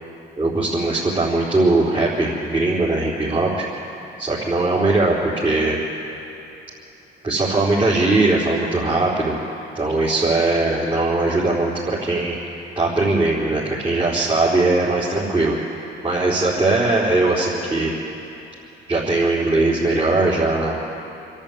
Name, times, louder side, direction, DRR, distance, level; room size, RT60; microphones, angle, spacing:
voice 1, 0.4-3.6 4.2-5.8 7.2-9.4 9.7-12.4 12.8-15.6 16.0-17.9 18.9-20.8, right 2 dB, 25° right, -8 dB, 4.4 m, -20 dB
26.5 x 11.0 x 8.9 m, 3.0 s
cardioid pair, 90°, 20 cm